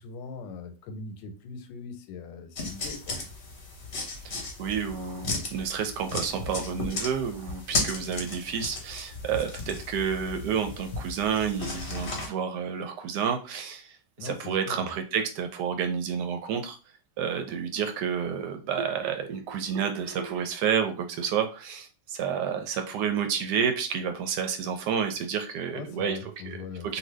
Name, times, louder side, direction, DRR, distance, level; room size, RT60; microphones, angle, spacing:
voice 1, 0.0-3.3 14.2-14.9 25.7-27.0, left 4 dB, 90° left, 1.3 m, -41 dB
sound 1, 2.5-12.3, left 3 dB, 50° left, 0.7 m, -35 dB
voice 2, 4.2-16.8 17.2-26.2 26.5-26.6 26.9-27.0, right 7 dB, 75° right, 1.1 m, -30 dB
2.7 x 2.6 x 3.2 m
omnidirectional pair, 1.9 m